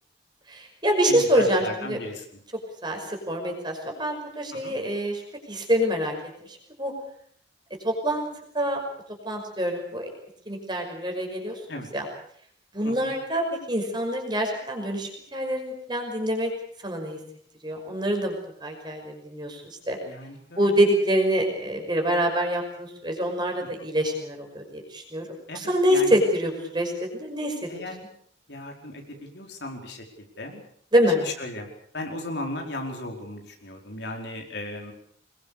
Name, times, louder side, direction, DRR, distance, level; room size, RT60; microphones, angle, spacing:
voice 1, 0.5-2.0 2.8-5.2 5.5-6.1 6.5-6.9 7.8-8.3 8.5-8.8 9.2-10.1 10.5-11.6 11.9-12.1 12.7-16.5 16.8-17.2 17.6-18.3 18.6-20.0 20.6-25.3 25.5-27.7 30.9-31.2, equal, 25° right, 3 dB, 5.7 m, -25 dB
voice 2, 1.0-2.2 4.6-4.7 11.7-11.9 13.0-13.1 20.0-20.8 23.6-23.9 25.5-26.2 27.7-27.9 28.5-30.0 30.4-30.6 31.1-31.7 31.9-34.9, left 2 dB, 65° left, 2 dB, 4.8 m, -36 dB
25.0 x 21.5 x 6.8 m, 0.63 s
head